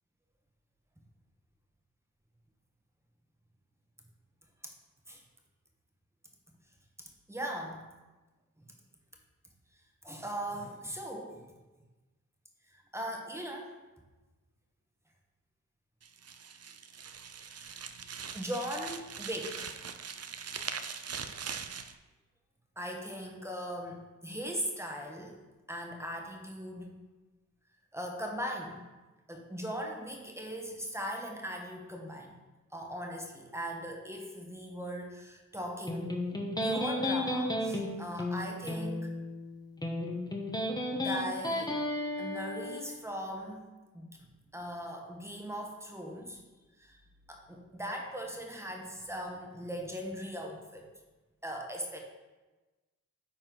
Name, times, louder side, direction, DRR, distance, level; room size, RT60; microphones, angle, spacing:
voice 1, 7.3-7.9 8.6-8.7 10.0-11.4 12.7-13.8 17.5-17.8 18.3-19.7 21.0-21.4 22.8-25.4 25.7-27.0 27.9-28.8 29.3-32.3 32.7-36.2 36.6-39.1 40.9-41.7 42.2-43.6 43.9-44.3 44.5-46.4 46.8-47.0 47.3-50.9 51.4-52.0, equal, 10° right, 1 dB, 1.3 m, -39 dB
sound 1, 16.0-21.9, right 6 dB, 45° right, 0.5 m, -41 dB
Electric guitar, 35.9-42.8, left 1 dB, 10° left, 1.3 m, -33 dB
9.1 x 4.4 x 3.9 m, 1.2 s
cardioid pair, 65°, 35 cm